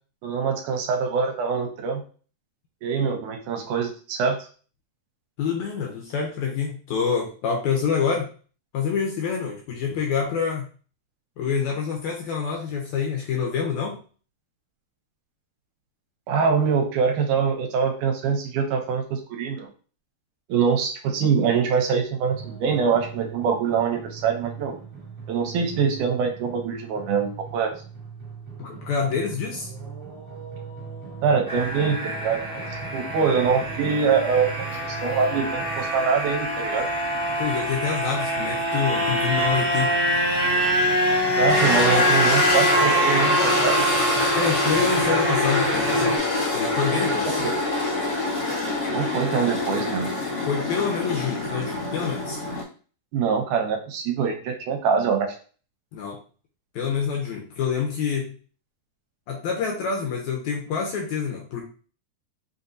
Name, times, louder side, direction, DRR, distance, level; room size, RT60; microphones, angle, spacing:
voice 1, 0.2-2.0 2.8-4.5 16.3-19.7 20.5-24.8 25.3-27.7 31.2-32.6 32.9-36.9 41.4-43.9 48.9-50.1 53.1-55.4, right 6 dB, 80° right, 3 dB, 2.1 m, -24 dB
voice 2, 5.4-8.3 8.7-10.6 11.4-14.0 28.6-29.7 37.4-39.9 44.4-46.2 46.5-47.4 50.4-52.4 55.9-56.2 56.8-58.3 59.3-61.6, left 6 dB, 75° left, 0 dB, 1.8 m, -27 dB
sound 1, 22.2-35.9, right 6 dB, 45° right, 0.7 m, -39 dB
sound 2, 31.5-46.2, equal, 15° left, 0.7 m, -25 dB
sound 3, 41.5-52.6, left 2 dB, 50° left, 1.2 m, -25 dB
5.3 x 2.7 x 2.6 m, 0.40 s
omnidirectional pair, 3.8 m